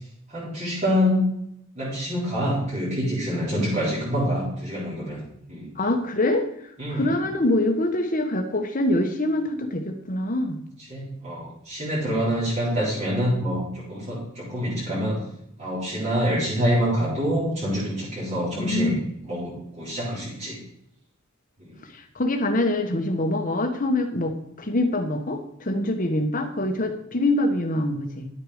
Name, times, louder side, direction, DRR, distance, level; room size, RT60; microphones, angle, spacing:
voice 1, 0.3-1.2 1.8-5.2 5.5-5.7 6.8-7.0 10.9-15.2 15.6-19.0 19.2-20.6 21.6-21.7, equal, 30° right, -9 dB, 4.1 m, -26 dB
voice 2, 5.7-10.6 18.5-19.0 21.9-24.3 24.6-28.3, left 1 dB, 40° left, 5 dB, 1.4 m, -25 dB
11.0 x 8.4 x 5.0 m, 0.75 s
head